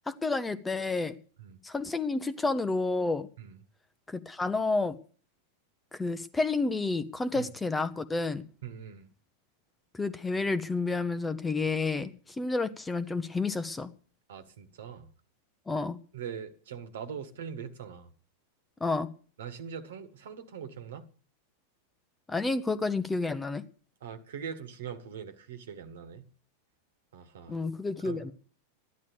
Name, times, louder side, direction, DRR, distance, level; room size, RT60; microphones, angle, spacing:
voice 1, 0.1-1.1 1.6-3.3 4.1-5.0 5.9-8.4 9.9-13.9 15.7-16.0 18.8-19.1 22.3-23.6 27.5-28.3, left 3 dB, 10° left, 0.8 m, -30 dB
voice 2, 8.6-9.1 14.3-15.1 16.1-18.1 19.4-21.1 24.0-26.3 27.1-27.7 28.0-28.3, right 7 dB, 60° right, 1.6 m, -42 dB
13.5 x 11.0 x 6.9 m
figure-of-eight pair, 90°, 0 cm